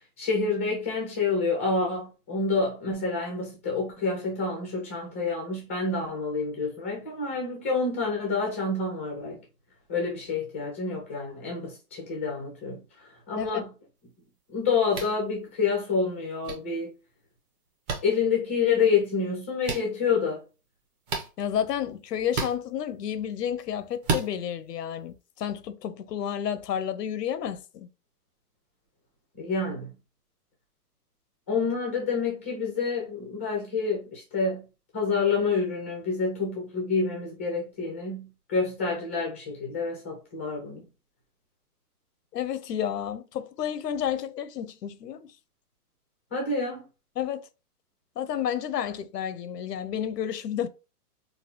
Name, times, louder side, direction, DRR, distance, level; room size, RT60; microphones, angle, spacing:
voice 1, 0.2-9.4 9.9-12.8 13.3-13.7 14.5-16.9 18.0-20.4 29.4-29.9 31.5-34.6 34.9-40.8 46.3-46.8, left 4 dB, 10° left, 0.3 m, -28 dB
sound 1, 14.9-15.2 16.4-16.5 17.9-18.0 19.6-19.8 21.1-21.3 22.3-22.5 24.0-24.3, right 4 dB, 30° right, 0.7 m, -29 dB
voice 2, 21.4-27.9 42.3-45.3 47.2-47.5 48.2-50.7, left 9 dB, 85° left, 0.6 m, -31 dB
4.0 x 2.3 x 2.7 m
hypercardioid pair, 135°, 47 cm